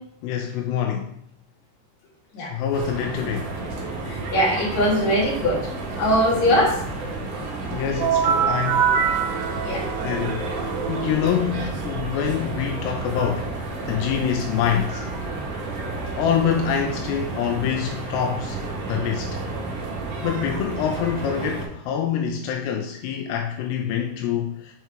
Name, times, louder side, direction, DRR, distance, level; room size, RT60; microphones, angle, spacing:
voice 1, 0.2-1.1 2.4-3.6 7.7-8.9 10.0-10.5 10.9-15.1 16.2-18.6 18.9-19.4 20.2-24.7, left 8 dB, 85° left, 3 dB, 2.7 m, -25 dB
sound 1, 2.7-21.7, right 3 dB, 65° right, 2.5 m, -31 dB
voice 2, 4.1-5.6 6.0-6.8 9.6-9.8, equal, 45° left, -6 dB, 3.3 m, -21 dB
sound 2, 8.0-11.6, right 7 dB, 85° right, 2.3 m, -24 dB
6.7 x 4.7 x 4.4 m, 0.70 s
omnidirectional pair, 4.8 m